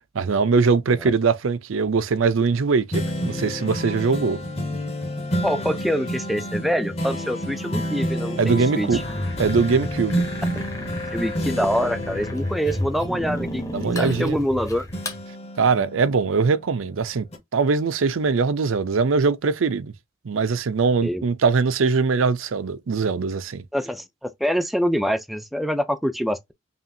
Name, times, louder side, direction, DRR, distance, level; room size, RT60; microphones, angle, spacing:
voice 1, 0.1-4.4 8.4-9.0 9.4-10.2 13.7-14.4 15.6-17.3 17.5-19.9 20.2-23.6, right 4 dB, 90° right, 0.5 m, -21 dB
sound 1, 2.9-14.6 14.9-16.8 17.3-17.4, equal, 30° left, 1.1 m, -30 dB
voice 2, 5.4-9.0 10.8-14.9 21.0-21.2 23.7-26.5, equal, ahead, 0.4 m, -25 dB
sound 2, 8.9-15.2, equal, 15° left, 0.8 m, -32 dB
5.5 x 2.5 x 2.6 m
head